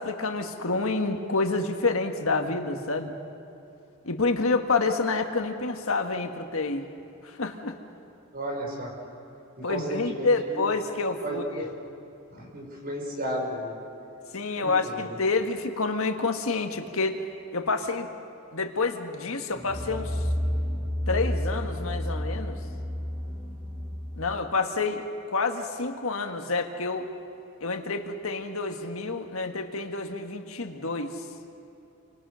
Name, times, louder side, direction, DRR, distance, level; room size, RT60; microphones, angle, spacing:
voice 1, 0.0-3.1 4.0-6.9 7.2-7.8 9.6-11.7 14.3-17.2 17.5-18.1 18.5-20.2 21.1-22.6 24.2-27.1 27.6-31.2, left 3 dB, 70° left, 5 dB, 1.7 m, -28 dB
voice 2, 8.3-9.0 9.6-10.6 11.2-11.7 12.3-13.7 14.4-15.2, equal, 45° right, -1 dB, 5.3 m, -34 dB
sound 1, 19.5-24.4, equal, 20° right, 3.1 m, -31 dB
30.0 x 24.5 x 6.4 m, 2.8 s
head